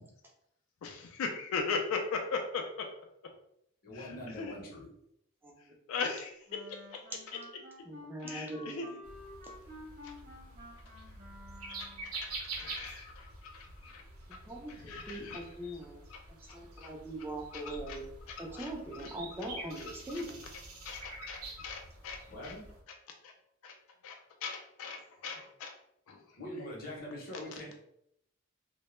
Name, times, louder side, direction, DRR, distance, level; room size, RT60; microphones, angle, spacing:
voice 1, 0.8-2.6 3.9-4.5 5.9-6.4 6.9-7.0 8.2-8.9 10.0-10.1 11.8-14.0 14.7-15.8 16.1-16.2 16.5-16.9 17.5-18.0 18.3-19.1 19.8-19.9 20.1-20.2 20.8-22.5 23.2-23.3 23.6-23.8 24.0-25.7 26.1-26.2, left 5 dB, 70° left, 3 dB, 0.3 m, -39 dB
voice 2, 3.8-4.9 18.5-18.6 19.0-19.1 19.7-19.8 22.3-22.6 26.3-27.8, left 1 dB, 45° left, -2 dB, 0.7 m, -43 dB
Wind instrument woodwind instrument, 6.5-12.1, left 1 dB, 40° right, 0.9 m, -50 dB
voice 3, 7.9-8.9 14.3-16.0 16.3-18.0 18.4-20.4, right 1 dB, 10° right, 0 dB, 0.4 m, -41 dB
sound 1, 9.0-22.8, right 3 dB, 80° right, 0.6 m, -47 dB
2.1 x 2.0 x 3.0 m, 0.76 s
head